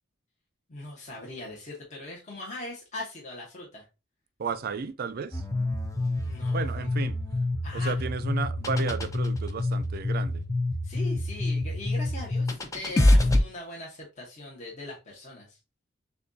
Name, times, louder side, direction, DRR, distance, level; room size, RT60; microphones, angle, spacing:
voice 1, 0.7-3.8 6.2-6.6 7.6-7.9 10.8-15.6, left 2 dB, 35° left, 1.0 m, -40 dB
voice 2, 4.4-5.4 6.5-7.2 7.7-10.4, right 5 dB, 50° right, 0.4 m, -33 dB
sound 1, 5.3-13.4, left 2 dB, 15° left, 0.5 m, -26 dB
6.7 x 2.3 x 2.6 m
head